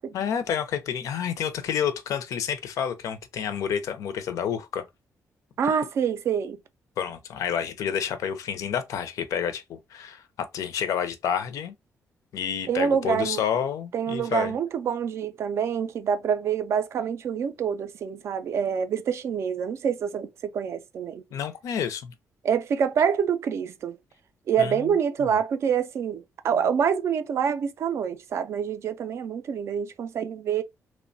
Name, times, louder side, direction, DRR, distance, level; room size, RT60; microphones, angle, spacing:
voice 1, 0.1-4.8 7.0-11.7 12.3-14.5 21.3-22.1 24.6-24.9 25.2-25.4, left 8 dB, 75° left, 0.5 m, -29 dB
voice 2, 5.6-6.6 12.7-13.4 13.9-21.2 22.4-24.0 24.5-30.6, right 7 dB, 55° right, 0.3 m, -26 dB
2.9 x 2.1 x 2.5 m
cardioid pair, 140°, 6 cm